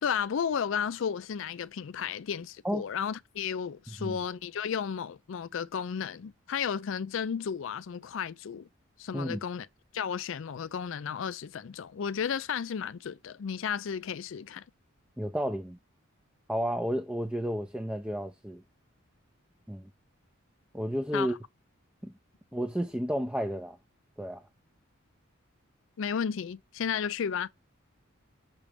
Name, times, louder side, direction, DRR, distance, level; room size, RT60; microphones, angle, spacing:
voice 1, 0.0-8.7 9.0-9.7 9.9-14.6 21.1-21.3 26.0-27.5, left 7 dB, 65° left, 0.4 m, -33 dB
voice 2, 3.9-4.2 9.1-9.4 15.2-15.8 16.5-18.6 19.7-19.9 20.7-21.3 22.0-22.1 22.5-23.8 24.2-24.4, equal, 5° right, 0.5 m, -32 dB
6.0 x 3.2 x 4.9 m
head